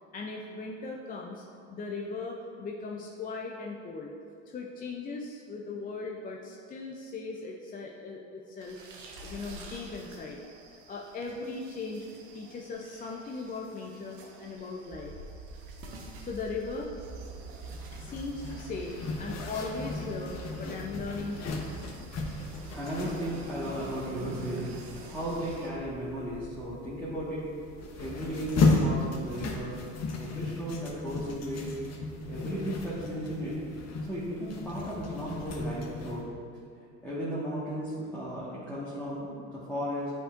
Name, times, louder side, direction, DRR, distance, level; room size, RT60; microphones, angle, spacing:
voice 1, 0.1-1.4 1.7-4.1 4.5-8.8 9.2-10.4 10.9-12.1 12.3-15.1 16.2-16.9 17.9-21.6, left 3 dB, 25° left, 0 dB, 0.5 m, -38 dB
sound 1, 8.6-25.7, right 2 dB, 80° right, 1.1 m, -47 dB
sound 2, 14.9-30.7, right 2 dB, 25° right, 1.1 m, -48 dB
Zipper (clothing), 17.7-36.2, left 3 dB, 45° left, 1.0 m, -34 dB
voice 2, 22.7-24.7 25.1-27.5 27.9-29.8 30.1-31.7 32.3-33.5 34.0-36.3 37.0-40.1, equal, 5° left, -10 dB, 1.4 m, -35 dB
8.5 x 5.2 x 2.5 m, 2.4 s
hypercardioid pair, 85°, 37 cm